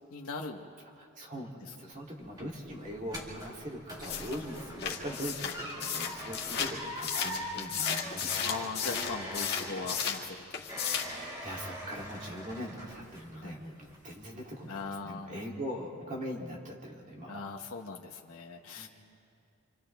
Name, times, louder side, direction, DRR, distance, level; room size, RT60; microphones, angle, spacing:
voice 1, 0.1-0.7 8.4-10.6 13.3-13.6 14.7-15.4 17.3-18.9, left 4 dB, 90° left, 1 dB, 1.1 m, -40 dB
voice 2, 1.0-8.5 11.2-17.5 18.7-18.9, equal, 35° right, -3 dB, 2.9 m, -41 dB
sound 1, 1.9-13.5 13.8-14.3 14.7-14.8, equal, 20° right, 3.0 m, -43 dB
sound 2, 4.0-10.2 10.5-11.2, left 8 dB, 50° left, 1.9 m, -34 dB
28.0 x 27.5 x 3.5 m, 2.6 s
head